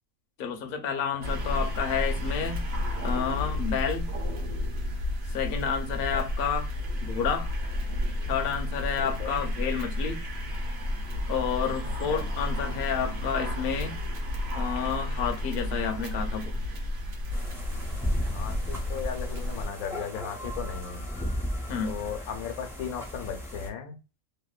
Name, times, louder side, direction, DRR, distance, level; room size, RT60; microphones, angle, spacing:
voice 1, 0.4-2.7 3.0-4.1 5.3-6.7 7.0-7.5 8.3-10.2 11.3-14.0 14.5-16.5 21.7-21.9, left 7 dB, 60° left, 0.6 m, -30 dB
sound 1, 1.2-19.7, left 1 dB, 55° right, 0.8 m, -31 dB
voice 2, 9.0-9.4 12.1-12.2 18.2-21.0 21.8-24.0, left 7 dB, 85° left, 1.1 m, -36 dB
sound 2, 17.3-23.7, equal, 5° right, 0.3 m, -35 dB
2.8 x 2.1 x 2.3 m
omnidirectional pair, 1.5 m